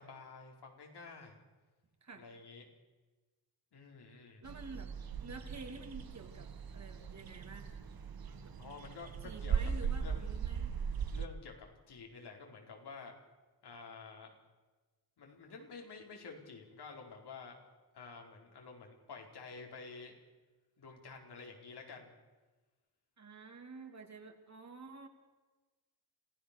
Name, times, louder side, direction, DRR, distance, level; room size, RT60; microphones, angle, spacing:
voice 1, 0.0-1.4 2.2-2.7 3.7-4.4 8.6-10.3 11.1-13.1 13.6-14.4 15.2-17.6 17.9-20.2 20.8-22.1, left 4 dB, 80° left, 1 dB, 4.6 m, -50 dB
voice 2, 4.4-4.9 5.2-7.8 8.4-8.5 9.2-10.7 23.2-25.1, right 3 dB, 45° right, 5 dB, 2.9 m, -50 dB
sound 1, 4.4-11.3, right 7 dB, 65° right, 1.4 m, -39 dB
26.5 x 16.5 x 6.9 m, 1.2 s
wide cardioid pair, 120°, 39 cm